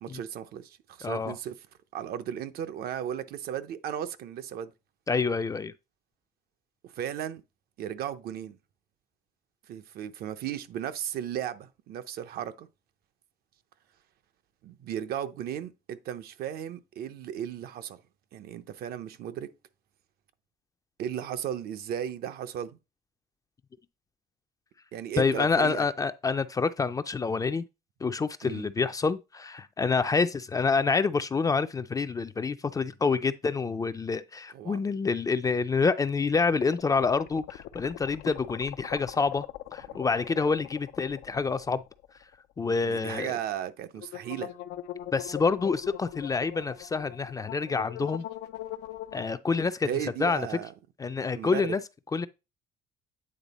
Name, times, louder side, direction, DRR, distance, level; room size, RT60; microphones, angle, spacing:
voice 1, 0.0-1.6 1.9-4.7 6.8-7.4 7.8-8.6 9.7-12.7 14.6-18.0 18.3-19.5 21.0-22.8 24.9-25.9 28.4-28.7 34.5-34.8 39.9-40.0 42.8-44.5 49.8-50.7 51.4-51.7, right 10 dB, 65° right, 0.6 m, -35 dB
voice 2, 1.0-1.3 5.1-5.7 25.2-27.6 28.0-39.5 39.7-41.8 42.6-43.3 45.1-48.3 49.1-50.5 51.0-51.8 52.1-52.3, left 4 dB, 20° left, 0.3 m, -27 dB
sound 1, 36.6-42.3 42.6-42.7 44.0-49.3, left 13 dB, 85° left, 0.4 m, -41 dB
8.8 x 3.4 x 4.1 m
cardioid pair, 110°, 17 cm